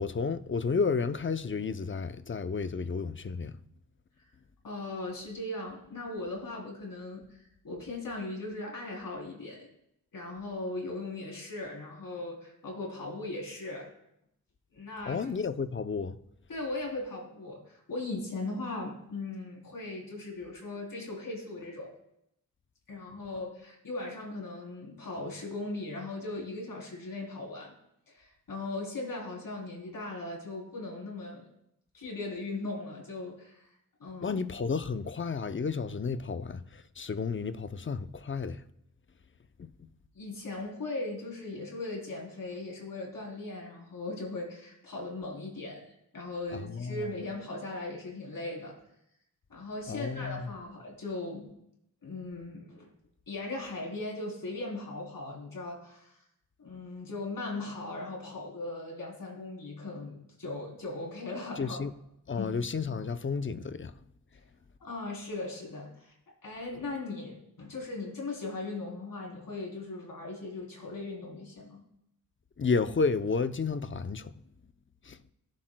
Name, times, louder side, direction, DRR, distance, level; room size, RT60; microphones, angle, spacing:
voice 1, 0.0-3.6 15.1-16.2 34.2-38.6 39.6-39.7 46.5-47.1 49.9-50.5 61.6-61.9 62.3-63.9 72.6-74.3 75.0-75.2, left 5 dB, 35° left, 0.6 m, -32 dB
voice 2, 4.6-9.7 10.1-13.9 14.7-15.3 16.5-21.9 22.9-27.7 28.1-31.5 31.9-33.7 34.0-34.4 40.1-48.8 49.5-51.5 52.0-52.9 53.3-56.2 56.6-61.8 62.4-62.5 64.3-64.4 64.8-66.2 66.4-71.8, left 2 dB, 65° left, 3.4 m, -38 dB
18.5 x 7.4 x 2.2 m
cardioid pair, 60°, 36 cm